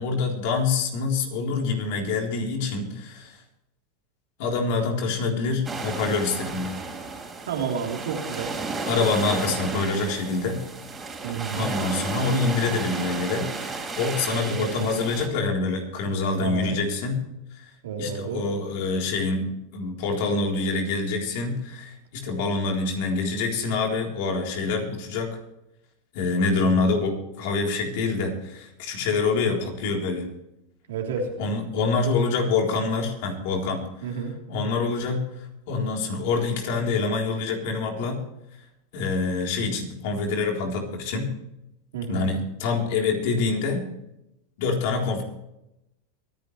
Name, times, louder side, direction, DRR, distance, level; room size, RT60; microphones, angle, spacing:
voice 1, 0.0-3.4 4.4-6.8 8.9-10.6 11.5-17.2 17.5-17.7 18.0-25.4 26.1-30.3 31.4-33.8 34.5-38.2 38.9-41.3 42.1-43.9 44.6-45.2, left 4 dB, 65° left, 2 dB, 3.7 m, -26 dB
sound 1, 5.6-15.3, right 4 dB, 20° right, 4.2 m, -33 dB
voice 2, 7.5-8.5 11.2-11.7 14.3-14.7 16.4-16.8 17.8-18.4 26.6-26.9 30.9-31.3 34.0-34.3 41.9-42.3, right 6 dB, 80° right, 1 dB, 3.5 m, -30 dB
24.0 x 10.5 x 3.2 m, 0.86 s
hypercardioid pair, 100°, 0 cm